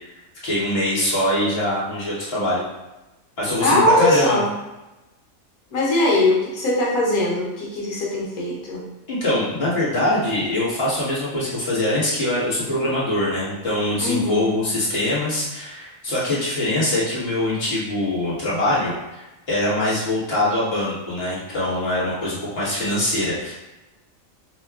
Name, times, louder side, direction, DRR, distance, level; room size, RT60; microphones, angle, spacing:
voice 1, 0.4-2.6 3.4-4.4 9.1-23.5, left 1 dB, 50° left, -8 dB, 1.4 m, -23 dB
voice 2, 3.6-4.5 5.7-8.8 14.0-14.6, left 1 dB, 90° left, -4 dB, 1.4 m, -20 dB
5.5 x 2.2 x 2.3 m, 1.0 s
omnidirectional pair, 1.4 m